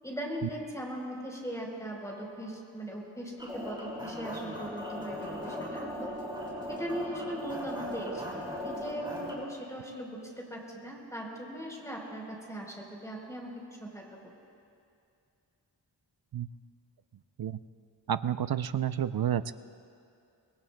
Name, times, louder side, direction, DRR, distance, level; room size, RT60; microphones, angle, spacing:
voice 1, 0.0-6.1 6.7-13.5 13.8-14.0, equal, 5° left, -2 dB, 3.9 m, -39 dB
sound 1, 3.4-9.3, equal, 10° right, 3.5 m, -38 dB
voice 2, 18.1-19.5, right 10 dB, 55° right, 13 dB, 0.5 m, -30 dB
25.5 x 20.5 x 2.2 m, 2.5 s
wide cardioid pair, 65°, 46 cm